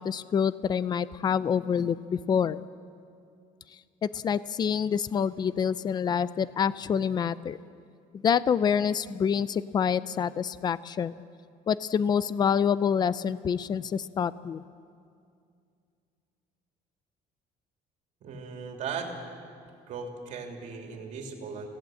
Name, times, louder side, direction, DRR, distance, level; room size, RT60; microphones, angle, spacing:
voice 1, 0.0-2.7 4.0-7.6 8.2-11.1 11.7-14.6, left 7 dB, 25° left, 17 dB, 0.5 m, -27 dB
voice 2, 18.2-19.1 19.9-21.7, right 5 dB, 50° right, 2 dB, 3.0 m, -37 dB
25.0 x 17.0 x 7.7 m, 2.4 s
cardioid pair, 155°, 16 cm